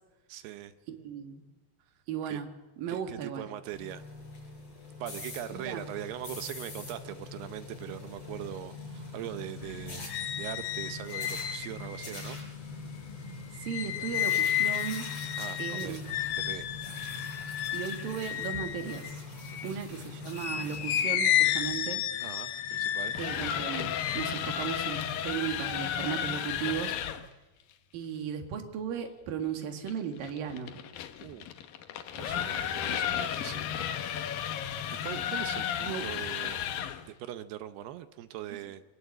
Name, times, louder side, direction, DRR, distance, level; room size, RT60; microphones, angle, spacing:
voice 1, 0.3-0.7 2.3-2.4 2.9-4.1 5.0-10.1 10.4-12.4 12.6-12.8 15.4-16.2 16.5-16.7 19.5-19.8 22.2-23.1 31.2-31.5 32.1-33.7 34.2-34.5 34.9-36.6 37.2-38.8, right 12 dB, 75° right, 11 dB, 2.7 m, -41 dB
voice 2, 0.9-1.4 2.1-2.5 2.8-3.5 5.5-5.8 13.6-15.1 15.6-16.1 17.7-19.1 19.6-22.0 23.2-26.9 27.9-30.7 32.8-32.9 35.8-36.1, right 8 dB, 60° right, 5 dB, 3.4 m, -36 dB
sound 1, 3.6-21.1, left 3 dB, 30° left, 6.8 m, -43 dB
sound 2, 9.6-19.8 20.3-25.8 26.2-26.8, left 11 dB, 90° left, 3.7 m, -32 dB
sound 3, 22.9-27.3 29.9-37.1, left 9 dB, 65° left, 2.5 m, -33 dB
23.5 x 19.5 x 7.9 m, 1.1 s
omnidirectional pair, 5.1 m